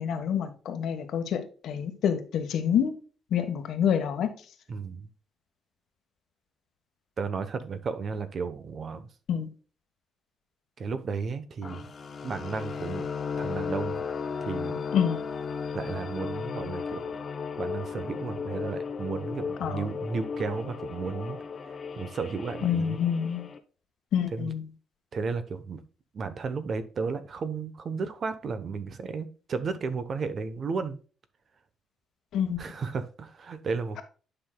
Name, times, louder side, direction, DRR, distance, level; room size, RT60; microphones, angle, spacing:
voice 1, 0.0-2.9 3.3-4.3 9.3-9.5 14.9-15.2 19.6-19.9 22.6-23.5 24.1-24.6 32.3-32.6, left 8 dB, 65° left, 7 dB, 1.3 m, -27 dB
voice 2, 4.7-5.1 7.2-9.1 10.8-11.9 12.2-13.1 13.4-14.0 14.4-14.8 15.7-17.2 17.6-21.4 21.7-23.0 24.3-24.5 25.1-25.8 26.1-31.0 32.6-34.0, right 5 dB, 40° right, 11 dB, 0.9 m, -33 dB
sound 1, 11.6-23.6, left 5 dB, 35° left, 0.8 m, -35 dB
10.0 x 5.9 x 2.3 m, 0.38 s
cardioid pair, 155°, 0 cm